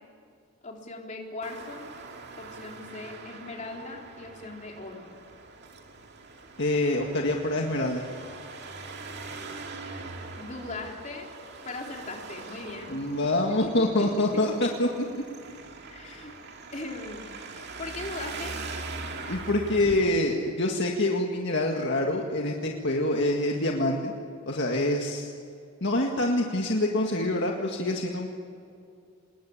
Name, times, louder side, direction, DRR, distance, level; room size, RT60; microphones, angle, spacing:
voice 1, 0.6-1.9 2.4-5.1 10.3-11.3 11.6-13.3 13.6-14.4 15.9-16.3 16.7-17.3 17.6-18.5, left 2 dB, 35° left, 0 dB, 3.8 m, -39 dB
Traffic noise roadway noise, 1.4-20.1, right 3 dB, 50° right, 2.5 m, -42 dB
voice 2, 6.6-8.0 12.9-15.1 16.0-16.2 19.3-24.1 24.5-25.3 25.8-28.3, left 1 dB, 50° left, 1 dB, 2.0 m, -26 dB
27.5 x 20.5 x 8.7 m, 2.4 s
head